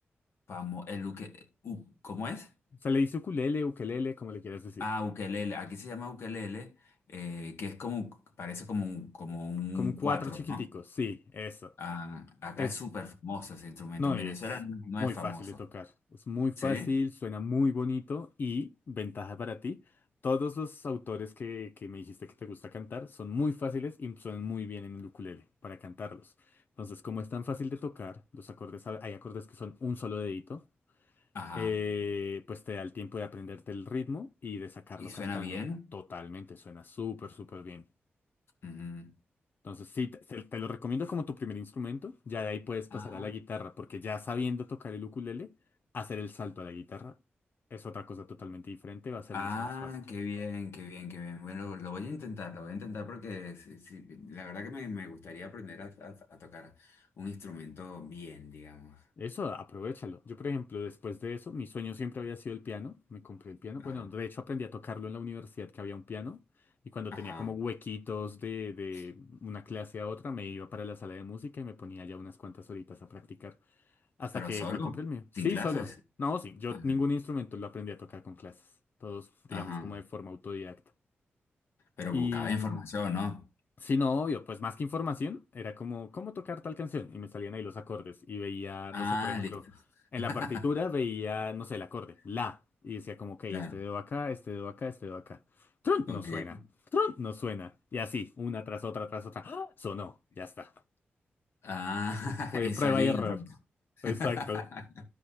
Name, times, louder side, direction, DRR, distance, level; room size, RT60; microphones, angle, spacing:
voice 1, 0.5-2.5 4.8-10.6 11.8-15.5 16.6-16.9 31.3-31.8 35.0-35.9 38.6-39.1 42.9-43.3 49.3-59.0 63.8-64.1 67.1-67.5 68.9-69.0 74.3-74.9 75.3-75.9 76.7-77.0 79.5-80.0 82.0-83.4 88.9-89.8 90.2-90.6 93.5-93.8 96.1-96.7 101.6-103.4 104.0-104.8, left 4 dB, 75° left, 1.9 m, -38 dB
voice 2, 2.8-4.8 9.7-11.7 12.6-12.7 14.0-14.4 15.0-15.9 16.3-19.8 20.2-26.3 26.8-30.6 31.5-35.6 35.9-37.8 39.6-45.5 45.9-47.1 47.7-49.5 59.2-66.4 66.9-73.5 74.2-75.9 76.2-78.6 79.0-80.8 82.1-82.8 83.8-89.6 90.1-92.6 92.8-96.6 96.9-100.7 102.5-103.4 104.0-104.6, left 4 dB, 50° left, 0.4 m, -36 dB
14.0 x 4.9 x 2.8 m
wide cardioid pair, 120°, 4 cm